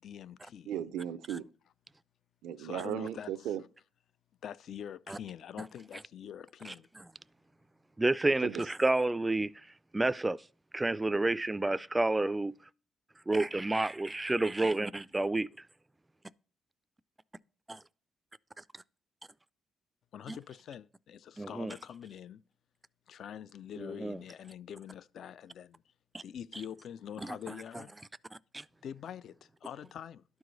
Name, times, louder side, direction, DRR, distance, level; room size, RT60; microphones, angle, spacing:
voice 1, 0.0-0.7 2.6-3.3 4.4-6.9 20.1-22.4 23.1-25.8 26.2-27.9 28.8-30.2, left 9 dB, 65° left, 0.4 m, -45 dB
voice 2, 0.7-1.4 2.4-3.6 8.4-8.6, right 10 dB, 90° right, 0.4 m, -36 dB
voice 3, 8.0-9.5 9.9-10.4 10.7-12.6 13.3-15.5 17.7-17.8 20.3-20.4 21.4-21.7 23.8-24.2 26.1-26.2 27.2-27.4 28.5-28.6, right 2 dB, 15° right, 0.3 m, -30 dB
12.0 x 4.8 x 3.9 m
cardioid pair, 90°, 0 cm